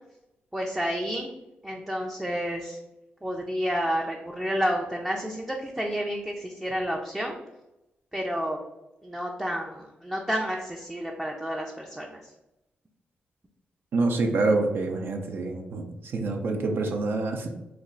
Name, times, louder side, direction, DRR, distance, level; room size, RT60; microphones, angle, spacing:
voice 1, 0.5-1.3 1.6-2.8 3.2-7.4 8.1-8.6 9.0-12.2, equal, 10° right, 0 dB, 0.4 m, -30 dB
voice 2, 13.9-15.9 16.1-17.5, right 3 dB, 65° right, 3 dB, 0.5 m, -26 dB
3.1 x 2.3 x 3.8 m, 0.95 s
cardioid pair, 85°, 4 cm